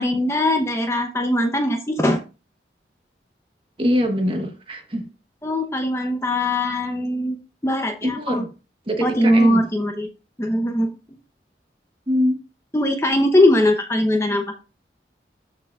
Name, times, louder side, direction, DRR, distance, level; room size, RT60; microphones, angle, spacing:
voice 1, 0.0-2.2 5.4-7.4 7.6-8.5 9.0-10.1 10.4-10.9 12.7-14.5, left 1 dB, 15° left, 0.8 m, -20 dB
voice 2, 3.8-5.1 8.0-8.5 8.9-9.6 12.1-12.4, equal, 30° right, 1.2 m, -23 dB
13.0 x 4.7 x 2.4 m
head